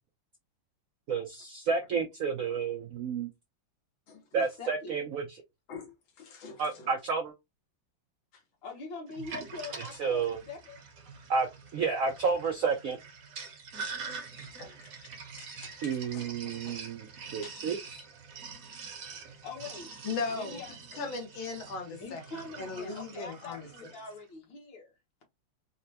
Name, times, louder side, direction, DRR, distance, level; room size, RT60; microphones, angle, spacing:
voice 1, 1.1-3.3 4.3-5.4 6.6-7.3 10.0-10.4 11.3-11.5 11.7-13.0 15.7-18.0, right 5 dB, 80° right, 0.7 m, -31 dB
voice 2, 4.3-5.0 8.6-10.8 19.2-19.9 20.3-20.7 22.0-24.9, left 3 dB, 70° left, 2.0 m, -43 dB
voice 3, 6.2-6.9 14.4-16.8 17.4-17.5 20.0-20.6 20.9-22.2 22.6-23.7, left 4 dB, 90° left, 1.9 m, -39 dB
Sink (filling or washing), 9.1-24.1, right 5 dB, 60° right, 1.0 m, -45 dB
4.2 x 2.2 x 2.7 m
omnidirectional pair, 2.1 m